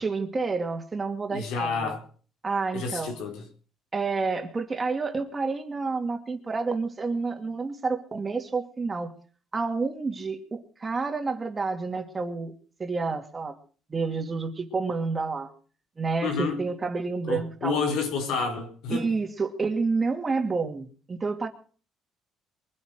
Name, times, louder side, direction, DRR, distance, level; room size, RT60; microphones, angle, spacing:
voice 1, 0.0-2.0 2.4-3.1 3.9-9.1 9.5-12.5 12.8-13.6 13.9-15.5 16.0-17.8 18.9-21.5, right 4 dB, 20° right, 2.4 m, -29 dB
voice 2, 1.3-2.0 2.7-3.4 16.2-16.7 17.2-19.0, left 5 dB, 80° left, 4.3 m, -29 dB
23.0 x 8.6 x 6.4 m
cardioid pair, 135°, 0 cm